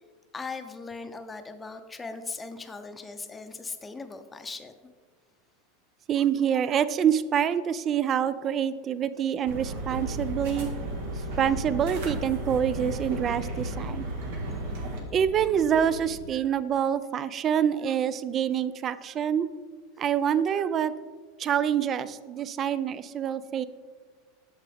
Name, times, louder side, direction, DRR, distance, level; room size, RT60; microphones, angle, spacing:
voice 1, 0.3-4.7 11.2-11.3 14.5-14.6, left 4 dB, 15° left, 7 dB, 0.7 m, -39 dB
voice 2, 6.1-10.7 11.4-14.1 15.1-19.5 20.0-20.9 21.4-23.6, right 8 dB, 35° right, 15 dB, 0.4 m, -26 dB
sound 1, 9.4-15.0, right 2 dB, 75° right, 1.6 m, -34 dB
sound 2, 9.9-16.3, left 4 dB, 90° left, 0.5 m, -42 dB
8.3 x 6.7 x 3.4 m, 1.5 s
hypercardioid pair, 105°, 0 cm